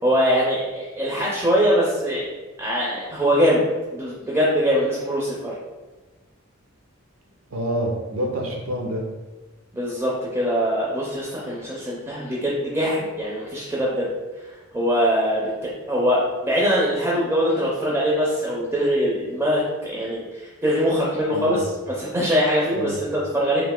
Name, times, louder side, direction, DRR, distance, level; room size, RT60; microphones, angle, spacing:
voice 1, 0.0-2.3 2.6-3.6 3.9-5.5 9.7-14.5 14.7-23.6, equal, 10° right, -5 dB, 0.5 m, -22 dB
voice 2, 7.5-9.1 21.3-21.6 22.7-23.0, right 1 dB, 70° right, 1 dB, 0.7 m, -27 dB
3.1 x 2.7 x 3.6 m, 1.2 s
head